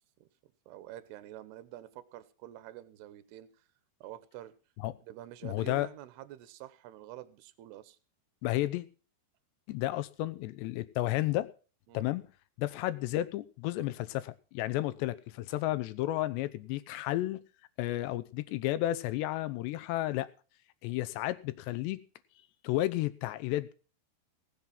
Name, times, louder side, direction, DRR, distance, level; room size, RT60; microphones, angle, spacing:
voice 1, 0.7-3.5 4.0-4.5 5.0-8.0 9.9-10.0 11.9-12.1, right 13 dB, 75° right, 14 dB, 2.9 m, -47 dB
voice 2, 5.4-5.9 8.4-8.9 9.7-11.5 11.9-12.2 12.6-17.4 17.8-20.3 20.8-22.0 22.6-23.7, left 15 dB, 80° left, 14 dB, 2.9 m, -32 dB
19.5 x 7.6 x 5.8 m, 0.37 s
omnidirectional pair, 5.1 m